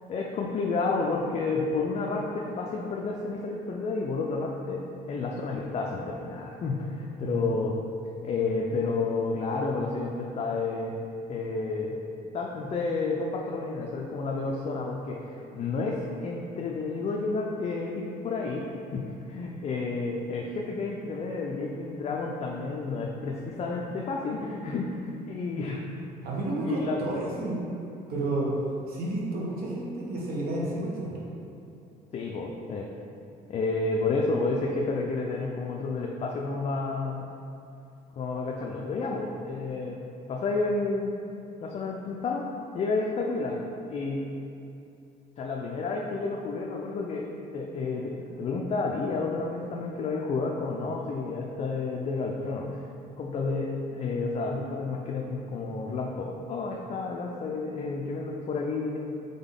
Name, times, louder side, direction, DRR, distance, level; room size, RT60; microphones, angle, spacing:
voice 1, 0.1-7.8 8.2-10.9 11.3-12.0 12.3-25.9 26.6-27.0 32.1-32.9 33.5-37.3 38.2-40.0 40.3-41.2 41.6-42.4 42.7-43.6 43.9-44.3 45.4-47.3 47.5-52.8 53.2-59.0, left 3 dB, 40° left, -1 dB, 0.4 m, -30 dB
voice 2, 7.2-7.5 26.2-27.6 28.1-28.5 28.9-31.2, right 2 dB, 65° right, -5 dB, 1.1 m, -31 dB
3.9 x 3.5 x 3.7 m, 2.7 s
cardioid pair, 110°, 17 cm